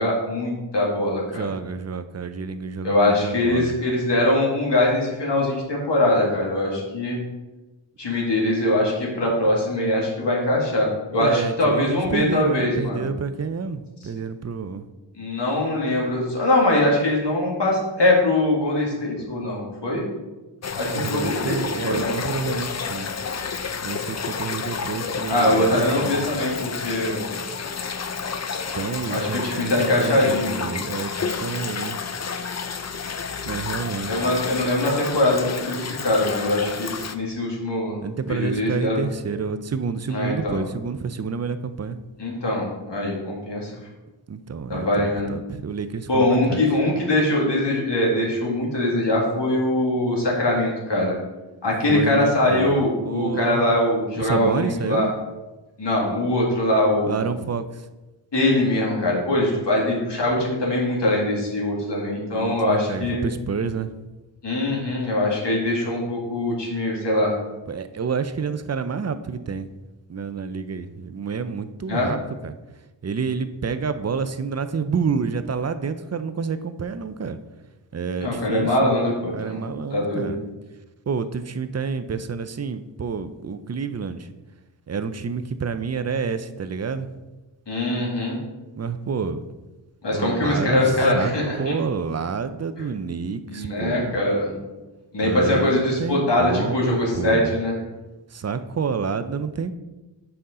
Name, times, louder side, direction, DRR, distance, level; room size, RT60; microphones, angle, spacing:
voice 1, 0.0-1.5 2.8-7.2 8.0-13.1 15.2-20.0 20.8-21.6 21.9-22.0 25.3-27.3 29.1-30.7 34.1-38.0 38.3-39.0 40.1-40.6 42.2-43.7 44.7-45.3 46.1-51.2 51.6-55.1 55.8-57.2 58.3-63.2 64.4-67.3 71.9-72.1 78.2-79.6 79.9-80.3 87.7-88.4 90.0-91.7 93.5-94.5 95.1-97.7, left 1 dB, 65° left, -3 dB, 2.2 m, -22 dB
voice 2, 1.3-3.7 11.2-14.9 20.9-23.1 23.8-26.2 28.7-32.0 33.5-34.3 38.0-42.0 44.3-46.6 51.9-53.7 54.2-55.1 57.0-57.9 61.8-62.0 62.3-63.9 67.7-69.7 70.1-72.5 73.0-77.4 77.9-78.9 79.3-80.4 81.1-84.3 84.9-87.1 88.8-89.4 90.1-91.3 91.6-94.2 95.2-97.5 98.3-99.7, right 5 dB, 35° right, 11 dB, 0.4 m, -29 dB
sound 1, 20.6-37.2, left 5 dB, 35° left, 0.5 m, -30 dB
7.8 x 5.6 x 3.8 m, 1.1 s
wide cardioid pair, 80°, 46 cm